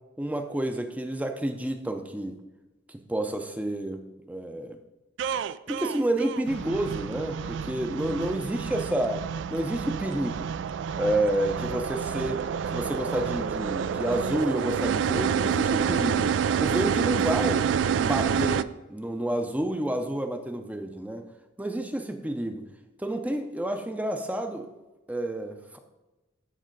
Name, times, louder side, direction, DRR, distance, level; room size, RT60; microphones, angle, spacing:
voice 1, 0.2-2.4 2.9-4.8 5.7-9.2 9.5-10.5 11.0-12.4 12.7-16.3 16.6-17.7 17.9-21.2 21.6-22.6 23.0-24.7 25.1-25.8, right 1 dB, 10° right, 6 dB, 0.5 m, -29 dB
sound 1, 5.2-18.6, right 7 dB, 70° right, 0.3 m, -28 dB
13.5 x 5.5 x 3.9 m, 1.1 s
head